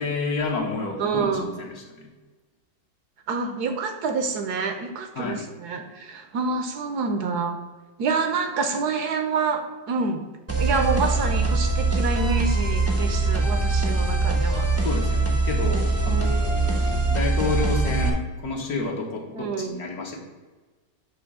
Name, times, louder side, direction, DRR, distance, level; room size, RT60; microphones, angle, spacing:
voice 1, 0.0-2.1 5.1-5.5 14.8-20.2, left 3 dB, 60° left, 1 dB, 1.5 m, -30 dB
voice 2, 1.0-1.5 3.3-7.6 8.0-10.2 10.6-14.7 16.1-16.4 19.3-19.8, right 4 dB, 70° right, 6 dB, 1.2 m, -27 dB
sound 1, 10.5-18.1, right 2 dB, 15° right, 0.4 m, -23 dB
8.6 x 3.1 x 6.0 m, 1.3 s
omnidirectional pair, 1.9 m